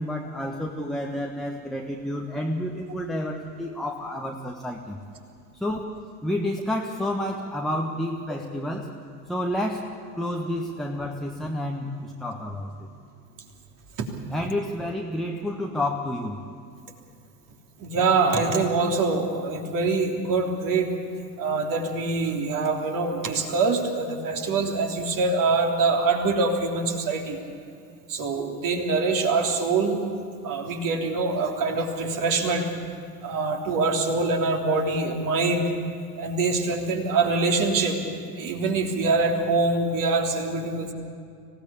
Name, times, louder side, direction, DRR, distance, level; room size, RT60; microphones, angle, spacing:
voice 1, 0.0-5.0 5.5-8.9 9.3-12.9 14.3-16.4, left 1 dB, ahead, 0 dB, 1.4 m, -30 dB
voice 2, 17.8-20.9 21.4-27.4 28.1-30.0 30.4-32.7 33.2-35.7 36.2-38.0 38.4-40.9, right 3 dB, 40° right, 2 dB, 3.3 m, -24 dB
26.0 x 17.5 x 8.5 m, 2.4 s
figure-of-eight pair, 75°, 50 cm